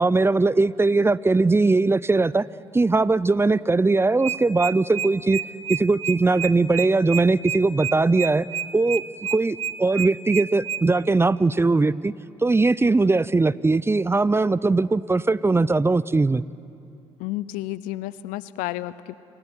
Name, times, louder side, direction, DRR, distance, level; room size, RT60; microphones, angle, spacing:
voice 1, 0.0-2.5 2.7-5.4 5.7-8.5 8.7-9.0 9.3-12.1 12.4-16.4, right 3 dB, 20° right, 20 dB, 0.5 m, -20 dB
sound 1, 4.2-10.8, right 9 dB, 45° right, 1.1 m, -29 dB
voice 2, 17.2-19.2, left 16 dB, 75° left, 17 dB, 0.6 m, -31 dB
28.5 x 12.5 x 9.7 m, 2.6 s
hypercardioid pair, 50°, 14 cm